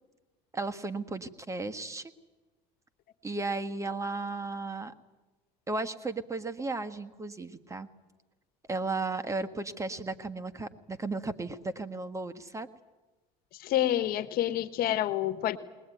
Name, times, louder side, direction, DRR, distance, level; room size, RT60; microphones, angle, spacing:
voice 1, 0.5-2.1 3.2-4.9 5.7-7.9 8.7-12.7, right 3 dB, 15° right, 8 dB, 1.6 m, -35 dB
voice 2, 13.6-15.6, left 12 dB, 60° left, 13 dB, 1.6 m, -28 dB
21.0 x 20.5 x 9.3 m, 1.2 s
supercardioid pair, 95°, 18 cm